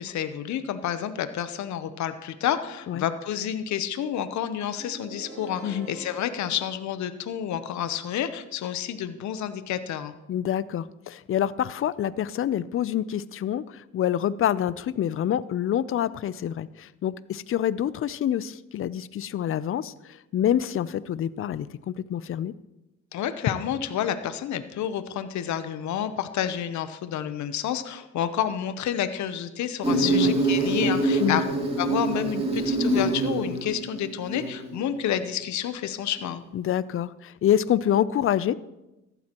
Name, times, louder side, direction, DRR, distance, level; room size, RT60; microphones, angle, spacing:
voice 1, 0.0-10.2 23.1-31.4 31.8-36.4, left 10 dB, 70° left, 11 dB, 0.8 m, -29 dB
sound 1, 4.8-7.6, right 3 dB, 50° right, 4.4 m, -45 dB
voice 2, 10.3-22.5 30.0-30.3 31.2-31.4 36.5-38.5, left 10 dB, 45° left, 18 dB, 0.5 m, -27 dB
Insect, 29.8-34.8, right 2 dB, 20° right, 2.6 m, -25 dB
14.0 x 12.0 x 3.0 m, 0.96 s
cardioid pair, 90°, 30 cm